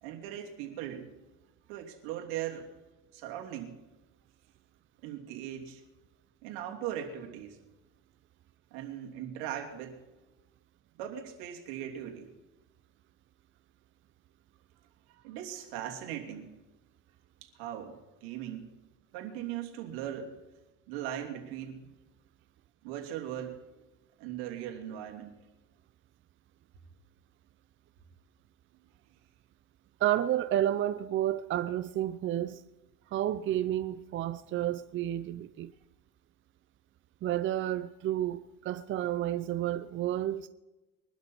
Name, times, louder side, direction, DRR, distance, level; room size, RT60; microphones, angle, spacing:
voice 1, 0.0-1.1 1.7-2.7 3.1-3.7 5.0-5.8 6.4-7.6 8.7-10.0 11.0-12.3 15.1-16.5 17.4-18.7 19.1-20.3 20.9-21.9 22.8-23.6 24.2-25.3, right 10 dB, 90° right, 3.1 m, -39 dB
voice 2, 30.0-32.6 33.1-35.7 37.2-40.5, right 12 dB, 40° right, 0.6 m, -31 dB
23.0 x 12.0 x 4.5 m
cardioid pair, 120°, 30 cm